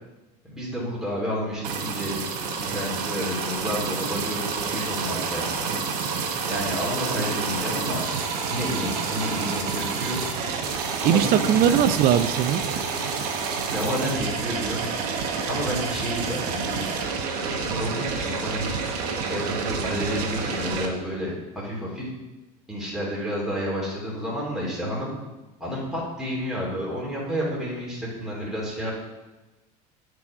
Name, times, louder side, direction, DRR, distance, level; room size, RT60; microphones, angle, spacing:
voice 1, 0.4-5.5 6.1-8.0 8.5-10.2 11.0-11.8 13.7-14.9 15.5-17.0 17.3-18.7 19.2-22.1 22.7-25.1 25.6-28.9, equal, ahead, -7 dB, 3.2 m, -30 dB
sound 1, 1.6-20.9, right 5 dB, 80° right, 1.2 m, -29 dB
voice 2, 11.0-12.6, right 9 dB, 50° right, 11 dB, 0.5 m, -20 dB
8.3 x 4.9 x 6.0 m, 1.1 s
supercardioid pair, 95°, 20 cm